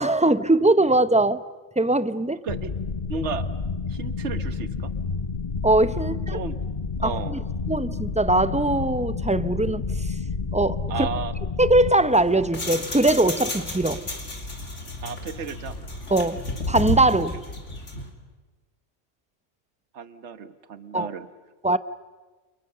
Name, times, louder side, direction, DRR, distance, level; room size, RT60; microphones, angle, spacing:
voice 1, 0.0-1.4 1.8-2.4 5.6-6.4 7.0-7.4 7.7-9.8 10.5-11.1 11.6-14.0 16.1-17.3 20.9-21.1 21.6-21.8, right 2 dB, 10° right, 14 dB, 0.5 m, -21 dB
sound 1, 2.5-11.9, left 4 dB, 40° left, 1.0 m, -30 dB
voice 2, 3.1-3.5 3.9-4.9 6.1-6.6 7.0-7.4 10.9-11.3 15.0-15.8 19.9-21.3, right 6 dB, 70° right, 12 dB, 1.5 m, -33 dB
sound 2, 11.9-18.1, left 1 dB, 85° left, 3.5 m, -32 dB
29.5 x 28.5 x 6.7 m, 1.3 s
omnidirectional pair, 1.2 m